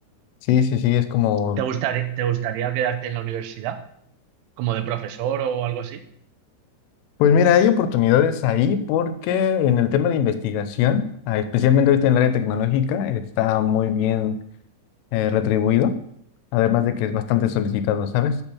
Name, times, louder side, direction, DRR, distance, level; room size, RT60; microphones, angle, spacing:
voice 1, 0.5-1.6 7.2-14.4 15.1-16.0 16.5-18.4, left 9 dB, 85° left, 11 dB, 3.2 m, -20 dB
voice 2, 1.6-3.8 4.6-6.0, right 10 dB, 85° right, 8 dB, 3.2 m, -26 dB
8.4 x 4.5 x 7.0 m, 0.68 s
omnidirectional pair, 5.5 m